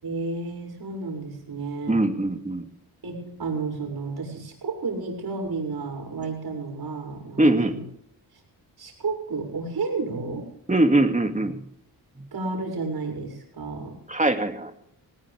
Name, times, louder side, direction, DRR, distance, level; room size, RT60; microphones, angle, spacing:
voice 1, 0.0-2.0 3.0-7.8 8.8-10.5 12.3-14.0, right 3 dB, 65° right, 2 dB, 7.0 m, -31 dB
voice 2, 1.9-2.7 7.4-7.8 10.7-11.6 14.1-14.7, right 1 dB, 20° right, 6 dB, 2.6 m, -21 dB
20.0 x 18.0 x 3.6 m, 0.71 s
cardioid pair, 75°, 40 cm